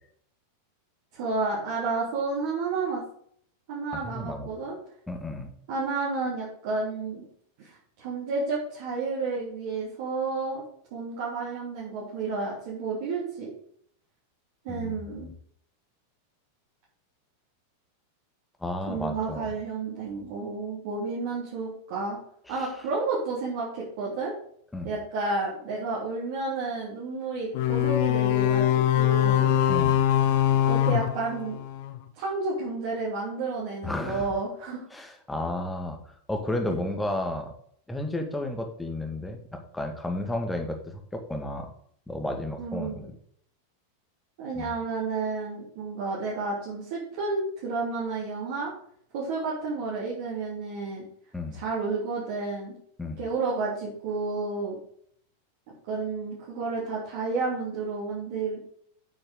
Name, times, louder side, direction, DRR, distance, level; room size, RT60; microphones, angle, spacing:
voice 1, 1.1-3.0 3.7-4.8 5.7-7.3 7.6-10.6 10.9-13.5 14.6-15.3 18.9-22.2 22.5-24.3 24.8-29.5 30.7-31.6 32.2-34.8 36.6-36.8 42.6-43.0 44.4-48.7 49.1-51.0 51.5-52.7 53.2-54.8 55.9-58.6, right 3 dB, 50° right, -7 dB, 3.7 m, -31 dB
voice 2, 4.0-4.5 5.1-5.5 14.7-15.0 18.6-19.5 22.5-22.7 24.7-24.9 29.7-30.0 33.8-34.3 34.9-36.0 36.3-37.5 37.9-41.7 42.1-43.1 44.5-44.8 51.3-51.6 53.0-53.2, left 1 dB, 5° left, 4 dB, 2.0 m, -32 dB
sound 1, 27.5-32.0, left 12 dB, 50° left, 1.0 m, -23 dB
9.5 x 8.7 x 3.9 m, 0.63 s
figure-of-eight pair, 90°, 0 cm